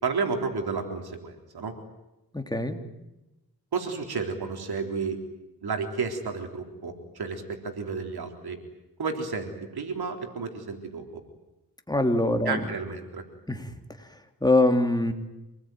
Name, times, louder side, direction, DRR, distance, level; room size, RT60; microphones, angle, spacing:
voice 1, 0.0-1.8 3.7-5.2 5.6-8.6 9.0-11.2 12.5-13.2, right 4 dB, 85° right, 4 dB, 3.9 m, -32 dB
voice 2, 2.3-2.8 11.9-12.6 13.5-13.7 14.4-15.1, left 2 dB, 10° left, 5 dB, 3.2 m, -23 dB
27.0 x 20.0 x 9.4 m, 0.95 s
wide cardioid pair, 80°, 37 cm